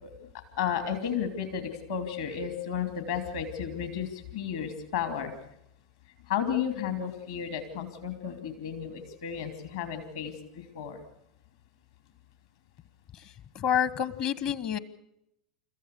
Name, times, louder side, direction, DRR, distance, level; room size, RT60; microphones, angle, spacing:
voice 1, 0.6-5.3 6.3-11.0, left 8 dB, 65° left, 8 dB, 2.8 m, -33 dB
voice 2, 13.5-14.8, left 9 dB, 45° left, 18 dB, 1.1 m, -28 dB
29.5 x 14.5 x 6.8 m, 0.79 s
figure-of-eight pair, 85°, 3 cm